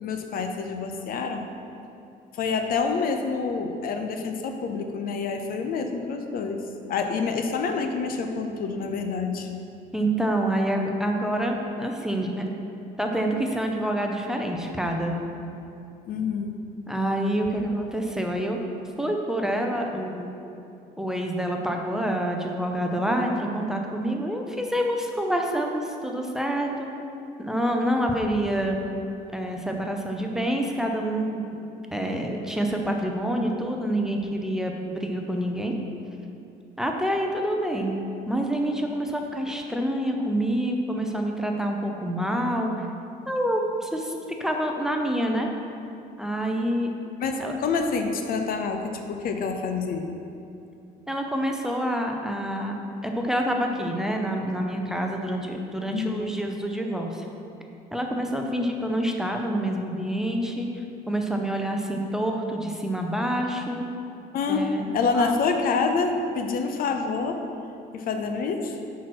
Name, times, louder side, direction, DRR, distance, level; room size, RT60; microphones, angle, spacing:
voice 1, 0.0-1.5 2.3-9.5 16.1-16.6 47.2-50.1 55.9-56.3 64.3-67.4 67.9-68.8, left 4 dB, 60° left, 5 dB, 0.7 m, -27 dB
voice 2, 9.9-12.4 13.0-15.1 16.9-18.6 19.0-20.3 21.0-26.9 27.4-28.8 29.3-31.6 31.9-35.8 36.8-38.0 38.3-42.9 43.3-44.1 44.4-45.5 46.2-46.9 47.4-47.6 51.1-52.8 53.0-57.3 57.9-63.8 64.5-64.9 65.1-65.4, right 1 dB, 5° right, 1 dB, 0.7 m, -27 dB
5.8 x 4.7 x 5.9 m, 2.7 s
cardioid pair, 110°, 17 cm